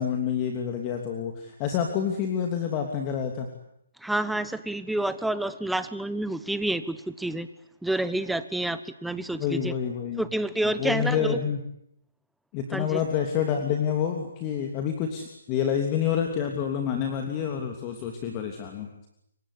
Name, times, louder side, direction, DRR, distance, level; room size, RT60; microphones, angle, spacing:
voice 1, 0.0-3.5 9.4-10.2 10.6-11.6 12.5-18.9, left 8 dB, 25° left, 4 dB, 3.0 m, -28 dB
voice 2, 4.0-7.5 7.8-9.7 10.2-11.4 12.7-13.0, right 1 dB, ahead, 13 dB, 1.1 m, -28 dB
28.0 x 24.0 x 8.5 m, 0.75 s
hypercardioid pair, 150°, 0 cm